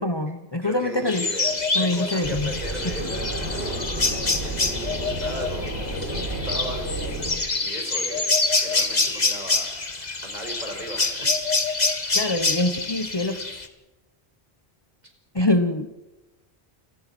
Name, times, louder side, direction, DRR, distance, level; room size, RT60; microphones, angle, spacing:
voice 1, 0.0-1.3 1.7-2.5 12.1-13.4 15.3-15.9, left 1 dB, 25° left, 8 dB, 1.2 m, -24 dB
voice 2, 0.6-7.0 7.5-9.7 10.2-12.0, equal, 45° right, 3 dB, 5.9 m, -38 dB
sound 1, 1.1-13.7, left 3 dB, 45° left, 2.0 m, -26 dB
sound 2, 2.2-7.4, right 1 dB, 85° right, 5.7 m, -31 dB
29.0 x 18.5 x 6.2 m, 1.1 s
omnidirectional pair, 1.0 m